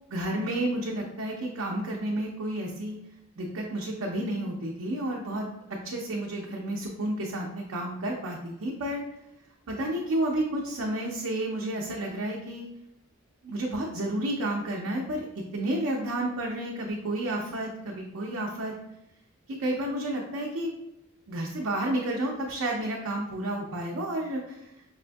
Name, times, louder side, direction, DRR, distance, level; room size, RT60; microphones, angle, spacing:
voice 1, 0.1-3.0 3.4-5.5 5.8-9.0 9.7-12.7 13.4-15.3 15.5-18.7 19.5-20.7 21.3-24.7, right 1 dB, 70° right, -2 dB, 0.5 m, -31 dB
4.9 x 2.2 x 2.5 m, 0.85 s
head